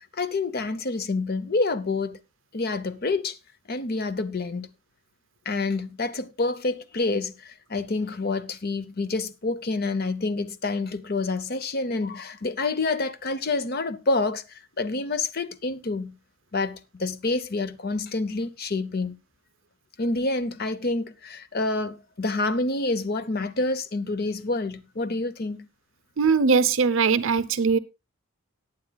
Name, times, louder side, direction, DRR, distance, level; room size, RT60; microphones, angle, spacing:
voice 1, 0.1-2.2 2.5-3.4 3.7-4.7 5.5-16.2 16.5-19.2 20.0-25.7, left 3 dB, 45° left, 0.7 m, -28 dB
voice 2, 26.2-27.8, right 5 dB, 60° right, 0.6 m, -20 dB
19.0 x 8.7 x 2.3 m
head